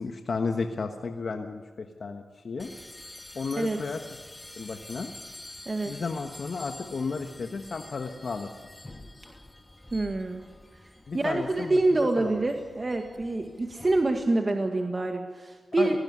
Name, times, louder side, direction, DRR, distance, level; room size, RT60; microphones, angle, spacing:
voice 1, 0.0-2.7 3.3-4.0 4.6-5.1 5.8-8.5 11.1-11.8 12.2-12.3 15.8-16.0, left 4 dB, 65° left, 5 dB, 1.3 m, -33 dB
sound 1, 2.6-14.3, left 1 dB, 20° left, 2.3 m, -47 dB
voice 2, 9.9-10.4 11.1-16.0, right 2 dB, 40° right, 4 dB, 1.9 m, -26 dB
19.0 x 15.5 x 9.5 m, 1.4 s
supercardioid pair, 40°, 0 cm